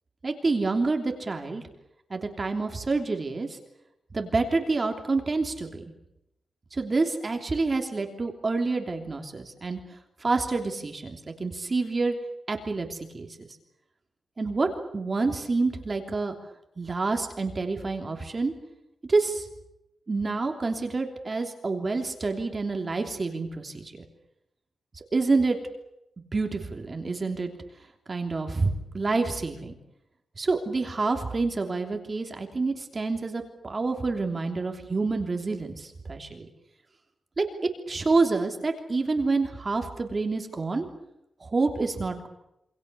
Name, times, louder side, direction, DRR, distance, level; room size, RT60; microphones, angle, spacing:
voice 1, 0.2-1.6 2.1-3.6 4.1-5.8 6.7-9.8 10.2-12.1 12.5-13.3 14.4-16.4 16.8-18.5 19.1-19.5 20.1-23.9 24.9-25.6 26.2-27.5 28.1-29.7 30.4-36.5 37.4-37.5 37.9-40.9 41.4-42.3, right 3 dB, 25° right, 4 dB, 3.1 m, -28 dB
27.5 x 26.5 x 6.9 m, 0.85 s
wide cardioid pair, 175°, 0 cm